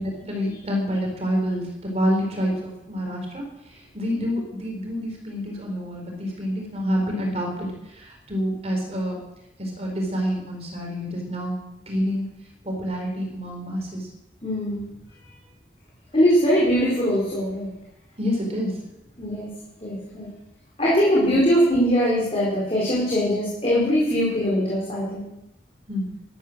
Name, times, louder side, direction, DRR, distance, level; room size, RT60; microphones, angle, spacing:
voice 1, 0.0-9.2 9.6-11.6 11.9-12.3 12.6-14.1 18.2-18.8 25.9-26.1, equal, 35° right, 1 dB, 3.7 m, -27 dB
voice 2, 14.4-14.8 16.1-17.7 19.2-19.5 19.8-20.3 20.8-25.3, equal, 35° left, -6 dB, 4.1 m, -21 dB
13.0 x 12.0 x 6.3 m, 0.89 s
head